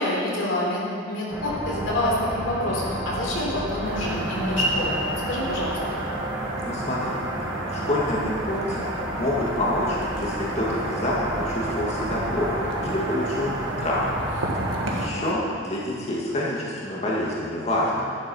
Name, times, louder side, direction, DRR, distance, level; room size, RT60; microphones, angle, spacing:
voice 1, 0.0-5.8 15.1-15.3, left 1 dB, 80° left, -4 dB, 3.6 m, -27 dB
sound 1, 1.3-15.0, equal, 10° right, 1.8 m, -32 dB
sound 2, 3.8-15.1, right 2 dB, 80° right, 1.6 m, -32 dB
voice 2, 6.6-7.2 7.7-14.2 14.5-18.1, left 1 dB, 35° left, -6 dB, 2.0 m, -27 dB
12.0 x 11.5 x 5.5 m, 2.3 s
head